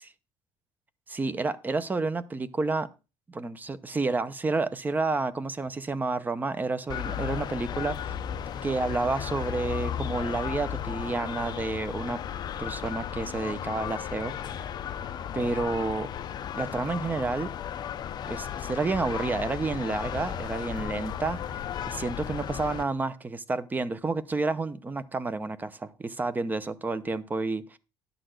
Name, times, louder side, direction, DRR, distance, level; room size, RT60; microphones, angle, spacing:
voice 1, 1.1-2.9 3.3-8.2 8.6-12.2 12.6-14.7 15.3-16.1 16.5-17.5 18.3-27.8, right 3 dB, 15° right, 0.7 m, -30 dB
sound 1, 6.9-22.8, left 9 dB, 40° left, 0.6 m, -35 dB
11.5 x 4.0 x 7.9 m
cardioid pair, 145°, 11 cm